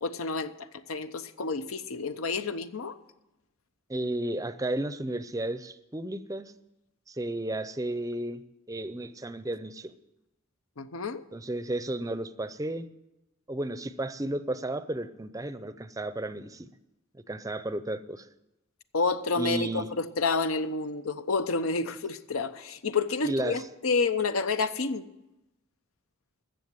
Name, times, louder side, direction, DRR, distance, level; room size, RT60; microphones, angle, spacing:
voice 1, 0.0-0.5 0.9-3.0 10.8-11.2 18.9-25.1, left 4 dB, 90° left, 0.8 m, -29 dB
voice 2, 3.9-6.5 7.1-9.9 11.3-12.9 13.5-16.7 17.1-18.3 19.3-19.9 23.2-23.7, right 1 dB, 15° right, 0.5 m, -33 dB
14.5 x 7.2 x 9.5 m
head